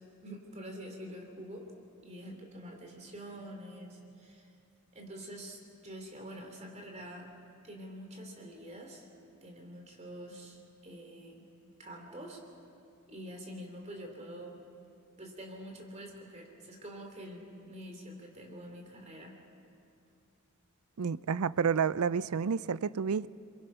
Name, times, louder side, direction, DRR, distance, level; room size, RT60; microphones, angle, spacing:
voice 1, 0.2-1.7 2.0-4.5 4.9-7.3 7.6-9.1 9.4-11.4 11.8-12.4 13.1-14.6 15.2-19.3, equal, 30° right, 2 dB, 2.9 m, -46 dB
voice 2, 21.0-23.3, right 6 dB, 85° right, 18 dB, 0.5 m, -30 dB
28.0 x 23.0 x 5.7 m, 2.5 s
head